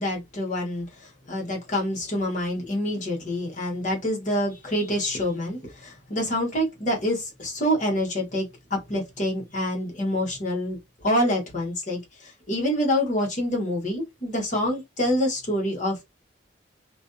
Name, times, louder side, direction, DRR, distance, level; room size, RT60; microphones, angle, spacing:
voice 1, 0.0-16.0, left 1 dB, 40° left, 0.9 m, -27 dB
2.4 x 2.2 x 2.5 m
head